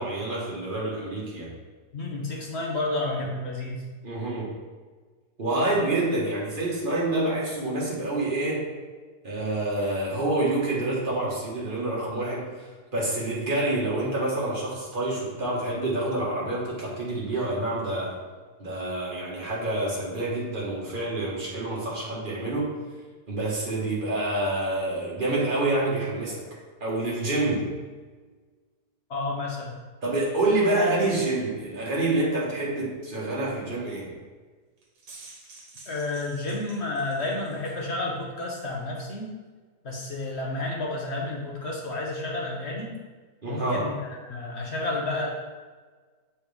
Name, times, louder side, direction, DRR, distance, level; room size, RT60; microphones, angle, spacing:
voice 1, 0.0-1.5 4.0-4.5 5.4-8.7 9.2-12.5 12.9-18.1 18.6-22.7 23.3-26.4 26.8-27.7 30.0-34.1 43.4-43.9, right 2 dB, 30° right, -5 dB, 1.7 m, -27 dB
voice 2, 1.9-3.8 29.1-29.7 35.9-39.3 39.8-42.9 43.5-44.0 44.3-45.3, left 2 dB, 50° left, -1 dB, 1.0 m, -31 dB
sound 1, 34.8-37.8, right 3 dB, 80° right, 1.7 m, -49 dB
7.5 x 4.4 x 3.5 m, 1.4 s
omnidirectional pair, 1.8 m